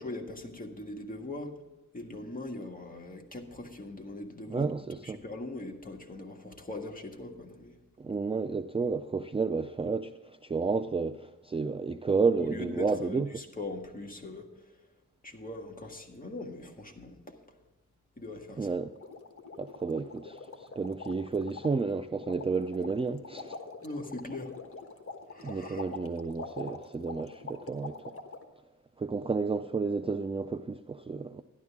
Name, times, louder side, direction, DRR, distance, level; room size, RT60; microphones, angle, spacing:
voice 1, 0.0-1.6 1.9-7.8 12.4-14.8 15.2-17.4 18.2-18.7 23.8-24.5 25.3-25.9, left 2 dB, 25° left, 1.7 m, -41 dB
voice 2, 4.5-5.2 8.0-13.3 18.6-18.9 19.6-23.6 25.4-28.1 29.0-31.4, right 4 dB, 20° right, 0.3 m, -31 dB
sound 1, 18.9-28.4, left 4 dB, 45° left, 1.3 m, -44 dB
12.0 x 11.0 x 3.5 m
wide cardioid pair, 95°, 31 cm